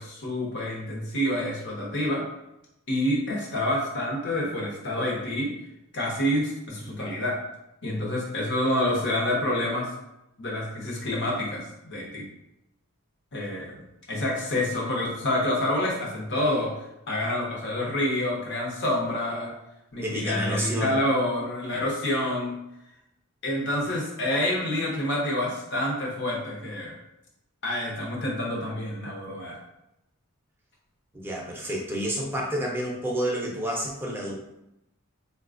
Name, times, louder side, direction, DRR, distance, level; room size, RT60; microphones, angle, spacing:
voice 1, 0.0-2.2 2.9-5.5 5.9-7.4 7.8-9.9 10.4-12.2 13.3-13.7 14.1-16.7 17.1-19.5 19.9-22.5 23.4-26.9 27.6-29.6, left 1 dB, 50° left, -2 dB, 0.8 m, -27 dB
voice 2, 20.0-21.0 31.1-34.4, right 1 dB, 10° right, -2 dB, 0.5 m, -29 dB
4.0 x 2.3 x 2.4 m, 0.87 s
head